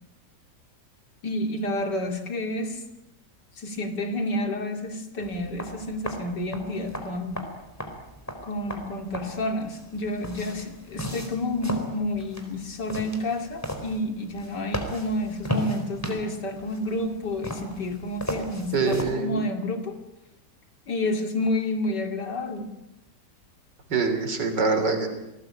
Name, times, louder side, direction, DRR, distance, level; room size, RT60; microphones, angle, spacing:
voice 1, 1.2-2.9 3.6-7.5 8.4-20.0 20.9-22.8, left 1 dB, 75° left, 6 dB, 3.2 m, -30 dB
sound 1, 5.2-19.1, equal, 10° left, 4.0 m, -36 dB
voice 2, 18.7-19.4 23.9-25.1, right 4 dB, 75° right, 8 dB, 3.8 m, -24 dB
27.5 x 19.0 x 8.8 m, 0.96 s
omnidirectional pair, 1.9 m